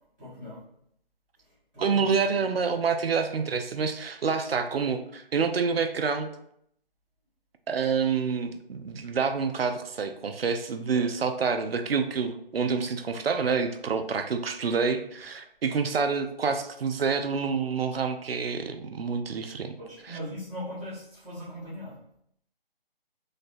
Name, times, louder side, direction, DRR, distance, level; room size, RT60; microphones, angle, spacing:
voice 1, 0.2-0.6 1.7-2.4 10.9-11.0 19.8-21.9, left 1 dB, 5° left, -19 dB, 0.8 m, -40 dB
voice 2, 1.8-6.3 7.7-19.8 20.0-20.2, right 5 dB, 75° right, 7 dB, 0.5 m, -27 dB
3.2 x 2.1 x 4.0 m, 0.71 s
figure-of-eight pair, 155°, 30 cm